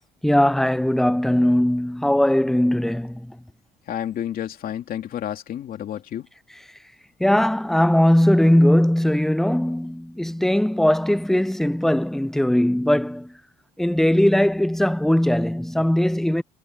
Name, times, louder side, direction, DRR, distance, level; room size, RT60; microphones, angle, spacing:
voice 1, 0.2-3.4 7.2-13.3 13.8-16.4, left 1 dB, ahead, 0.4 m, -19 dB
voice 2, 3.9-6.3, left 10 dB, 60° left, 2.7 m, -30 dB
cardioid pair, 110°, 17 cm